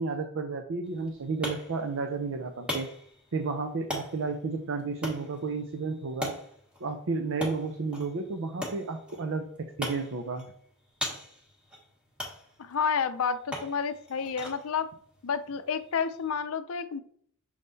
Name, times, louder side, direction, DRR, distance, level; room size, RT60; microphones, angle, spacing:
voice 1, 0.0-2.9 3.3-6.3 6.8-9.5 9.8-10.5, right 4 dB, 60° right, 7 dB, 0.6 m, -32 dB
sound 1, 0.8-16.4, left 1 dB, 5° right, 1.4 m, -41 dB
voice 2, 12.6-14.9 15.2-17.0, left 6 dB, 70° left, 11 dB, 0.5 m, -30 dB
6.4 x 3.7 x 4.0 m, 0.62 s
head